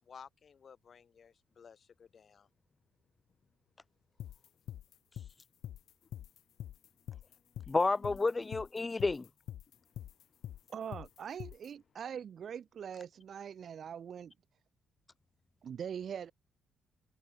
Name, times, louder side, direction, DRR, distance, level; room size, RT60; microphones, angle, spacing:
voice 1, 0.0-2.5 6.0-6.3 6.7-8.6 9.7-10.7, left 6 dB, 45° left, 4.3 m, -58 dB
sound 1, 4.2-11.7, left 11 dB, 75° left, 0.6 m, -45 dB
voice 2, 7.7-9.3, left 3 dB, 25° left, 0.4 m, -30 dB
voice 3, 10.7-14.3 15.6-16.3, right 8 dB, 55° right, 0.5 m, -42 dB
cardioid pair, 90°, 0 cm